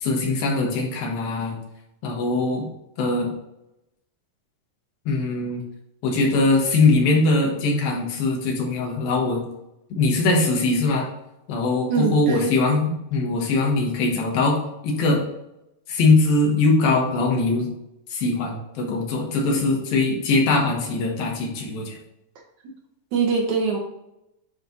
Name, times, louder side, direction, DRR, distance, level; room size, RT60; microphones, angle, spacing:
voice 1, 0.0-1.6 2.0-2.7 3.0-3.3 5.1-5.6 6.0-9.4 9.9-11.1 11.5-15.2 15.9-17.7 18.1-21.9, left 3 dB, 80° left, 0 dB, 3.2 m, -21 dB
voice 2, 11.9-12.5 23.1-23.8, right 5 dB, 70° right, -1 dB, 2.0 m, -22 dB
9.8 x 3.3 x 3.9 m, 0.87 s
omnidirectional pair, 4.1 m